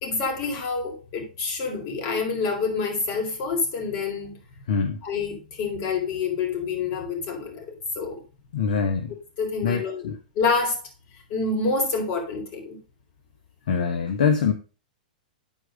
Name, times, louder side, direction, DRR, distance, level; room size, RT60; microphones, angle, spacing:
voice 1, 0.0-4.3 5.0-8.2 9.4-10.8 11.3-12.8, left 4 dB, 45° left, 2 dB, 4.2 m, -27 dB
voice 2, 4.7-5.0 8.5-9.1 9.6-10.2 13.7-14.5, left 6 dB, 70° left, 6 dB, 1.1 m, -24 dB
9.3 x 4.8 x 5.0 m, 0.33 s
hypercardioid pair, 115°, 5 cm